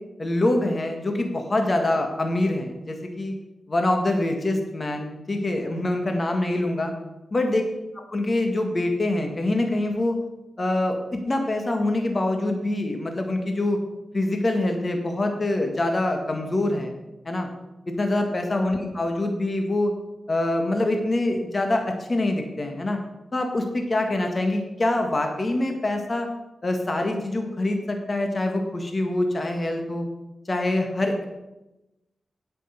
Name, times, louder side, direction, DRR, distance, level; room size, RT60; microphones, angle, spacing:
voice 1, 0.2-3.3 3.7-6.9 7.3-7.6 8.0-10.2 10.6-13.8 14.1-16.9 17.3-17.5 17.9-19.9 20.3-23.0 23.3-26.3 26.6-30.1 30.5-31.1, left 2 dB, 40° left, 4 dB, 1.7 m, -25 dB
8.5 x 6.6 x 8.0 m, 0.98 s
cardioid pair, 50°, 0 cm